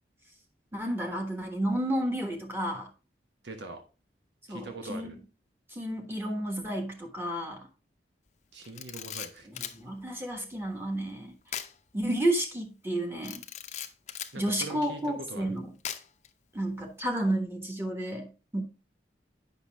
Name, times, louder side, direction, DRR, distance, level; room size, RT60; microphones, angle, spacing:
voice 1, 0.7-2.9 4.5-5.1 5.7-7.7 9.5-11.4 11.9-13.4 14.3-15.7 16.5-18.6, right 1 dB, 15° right, 1.3 m, -31 dB
voice 2, 3.4-3.8 4.5-5.2 8.5-9.5 14.3-15.6, right 2 dB, 80° right, 1.2 m, -42 dB
Camera, 8.6-9.8 11.5-11.7 12.1-12.2 13.2-14.4 15.8-16.3, left 9 dB, 40° left, 0.6 m, -38 dB
8.2 x 5.9 x 3.4 m
head